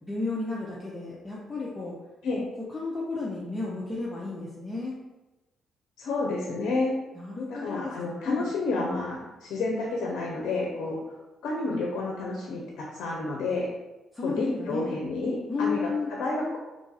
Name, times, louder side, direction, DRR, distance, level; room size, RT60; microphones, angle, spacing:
voice 1, 0.0-2.0 2.7-4.9 7.2-8.4 11.7-11.8 14.1-14.9 15.5-16.1, left 3 dB, 20° left, -6 dB, 0.7 m, -33 dB
voice 2, 6.0-7.0 7.5-11.2 11.4-13.7 14.2-16.6, left 3 dB, 80° left, -1 dB, 0.6 m, -30 dB
3.0 x 2.4 x 4.0 m, 1.1 s
cardioid pair, 90°, 0 cm